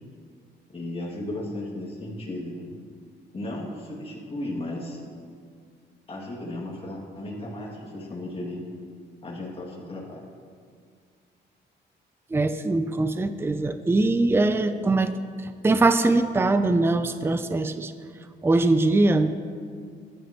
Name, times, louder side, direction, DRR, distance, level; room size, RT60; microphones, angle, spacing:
voice 1, 0.7-2.6 3.3-5.0 6.1-8.6 9.2-10.2, left 1 dB, 30° left, -4 dB, 2.3 m, -35 dB
voice 2, 12.3-15.1 15.4-17.9 18.4-19.4, right 2 dB, 10° right, 11 dB, 0.4 m, -22 dB
14.0 x 10.5 x 3.0 m, 2.1 s
cardioid pair, 90°, 19 cm